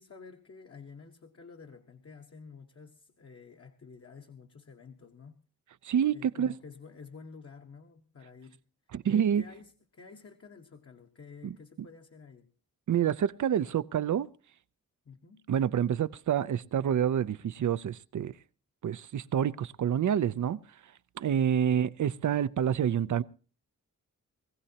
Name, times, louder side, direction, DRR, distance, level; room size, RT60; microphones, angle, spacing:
voice 1, 0.0-5.4 6.1-8.6 9.1-12.5 15.0-15.5 21.3-21.7, left 5 dB, 45° left, 1.2 m, -50 dB
voice 2, 5.8-6.5 8.9-9.4 11.4-11.6 12.9-14.3 15.5-18.3 18.8-20.6 21.2-23.2, right 9 dB, 65° right, 0.6 m, -28 dB
21.0 x 15.5 x 2.8 m
wide cardioid pair, 115°, 33 cm